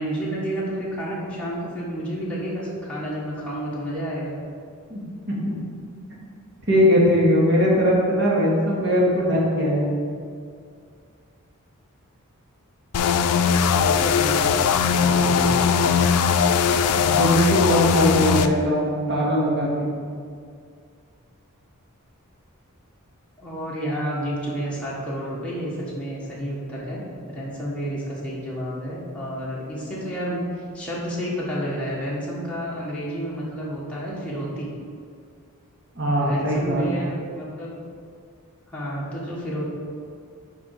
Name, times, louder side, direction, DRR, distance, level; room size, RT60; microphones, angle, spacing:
voice 1, 0.0-4.5 13.7-16.0 23.4-34.7 36.2-37.7 38.7-39.6, equal, 5° left, -8 dB, 1.5 m, -30 dB
voice 2, 6.7-9.9 17.0-19.9 36.0-37.0, equal, 50° right, -5 dB, 2.0 m, -20 dB
sound 1, 12.9-18.5, left 6 dB, 90° left, 0.4 m, -19 dB
7.1 x 5.1 x 4.9 m, 2.2 s
head